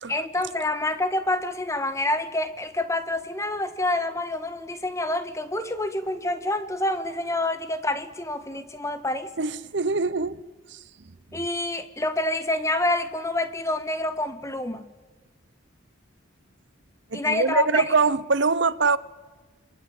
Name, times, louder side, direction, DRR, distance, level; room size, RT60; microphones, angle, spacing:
voice 1, 0.1-9.3 11.3-14.9 17.1-17.9, left 2 dB, 15° left, 1.6 m, -27 dB
voice 2, 9.4-10.4 10.7-10.8 17.1-19.0, right 4 dB, 60° right, 0.8 m, -23 dB
28.5 x 23.0 x 8.9 m
head